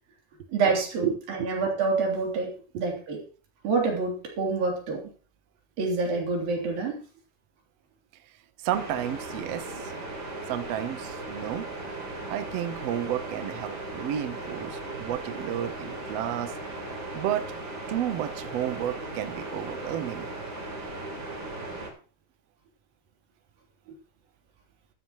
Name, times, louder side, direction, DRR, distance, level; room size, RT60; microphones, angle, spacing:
voice 1, 0.5-3.2 3.6-5.0 5.8-7.0, right 4 dB, 70° right, 1 dB, 4.9 m, -27 dB
voice 2, 1.0-1.5 8.6-9.9 10.5-11.7 12.3-16.5 17.1-17.5 17.9-20.3, right 11 dB, 85° right, 10 dB, 1.4 m, -31 dB
sound 1, 8.7-21.9, right 2 dB, 30° right, 3.9 m, -37 dB
14.5 x 12.5 x 3.0 m, 0.38 s
omnidirectional pair, 4.4 m